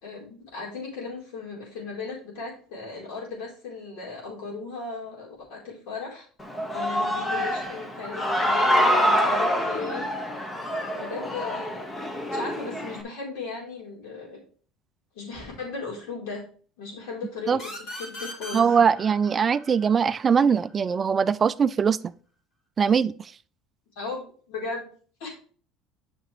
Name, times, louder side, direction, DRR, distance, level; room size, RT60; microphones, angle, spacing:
voice 1, 0.0-6.3 6.7-10.1 10.9-11.9 12.2-14.4 15.1-16.4 16.8-19.0 24.0-24.9 25.2-25.3, left 4 dB, 80° left, 4.3 m, -37 dB
Human voice / Cheering, 6.4-13.0, equal, 15° left, 1.0 m, -26 dB
sound 1, 17.6-21.0, left 1 dB, 55° left, 4.2 m, -40 dB
voice 2, 18.5-22.0 22.8-23.3, right 6 dB, 25° right, 0.3 m, -21 dB
8.7 x 5.9 x 3.3 m
cardioid pair, 135°, 0 cm